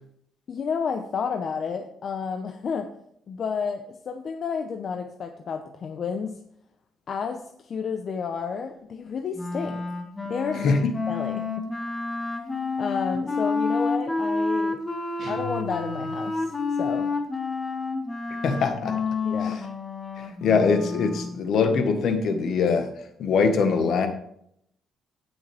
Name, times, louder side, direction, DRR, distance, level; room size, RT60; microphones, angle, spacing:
voice 1, 0.5-2.9 3.3-6.4 7.1-9.8 10.2-10.8 11.1-11.7 12.8-14.8 15.3-17.1 19.2-19.6, left 6 dB, 50° left, 5 dB, 0.8 m, -31 dB
Wind instrument woodwind instrument, 9.3-21.4, left 3 dB, 15° left, 1.7 m, -29 dB
voice 2, 10.5-10.9 18.4-19.0 19.4-19.5 20.2-22.9 23.2-24.1, left 5 dB, 65° left, 7 dB, 1.6 m, -22 dB
sound 1, 15.2-16.6, left 5 dB, 50° right, 3.4 m, -39 dB
16.5 x 6.3 x 3.5 m, 0.70 s
cardioid pair, 125°, 0 cm